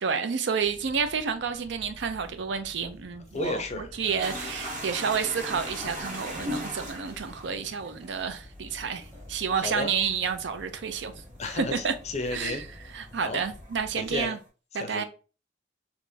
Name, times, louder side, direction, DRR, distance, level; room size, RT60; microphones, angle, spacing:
voice 1, 0.0-11.1 11.5-11.9 12.3-12.6 12.9-14.4 14.7-15.0, right 6 dB, 65° right, 0.5 m, -30 dB
sound 1, 0.6-14.2, left 1 dB, 20° right, 1.1 m, -49 dB
voice 2, 3.3-4.2 9.6-9.9 11.4-12.6 13.2-13.4 14.0-14.4 14.7-15.0, left 2 dB, 35° left, 0.5 m, -33 dB
sound 2, 4.2-12.7 13.0-14.4, equal, 40° right, 1.1 m, -39 dB
3.4 x 2.9 x 2.6 m
head